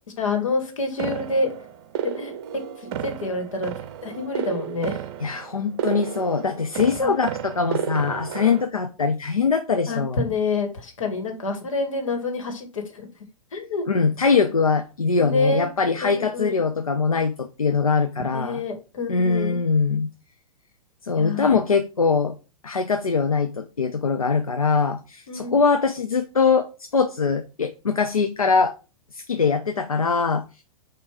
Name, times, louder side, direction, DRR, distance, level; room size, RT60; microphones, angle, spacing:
voice 1, 0.2-1.5 2.2-2.3 2.8-3.7 4.0-5.0 5.3-5.4 7.0-7.1 7.4-7.5 9.9-13.1 13.5-13.8 15.2-15.7 16.0-16.6 18.3-19.6 21.2-21.5 25.3-25.6, left 3 dB, 65° left, 4 dB, 1.9 m, -27 dB
sound 1, 1.0-8.7, right 9 dB, 45° right, 0.7 m, -32 dB
voice 2, 5.2-10.2 13.9-18.6 19.1-20.1 21.0-22.3 22.6-28.7 29.1-30.4, left 5 dB, 80° left, 7 dB, 0.6 m, -22 dB
8.4 x 2.9 x 4.8 m, 0.32 s
figure-of-eight pair, 105°, 18 cm